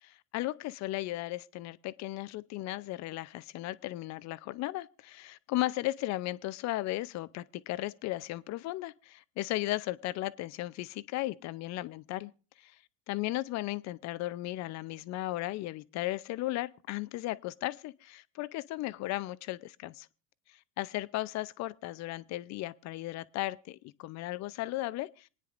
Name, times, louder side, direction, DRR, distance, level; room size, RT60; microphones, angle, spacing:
voice 1, 0.0-12.3 12.6-12.7 13.1-20.1 20.8-25.3, left 17 dB, 40° left, 0.6 m, -36 dB
27.0 x 9.8 x 2.5 m
supercardioid pair, 110°, 44 cm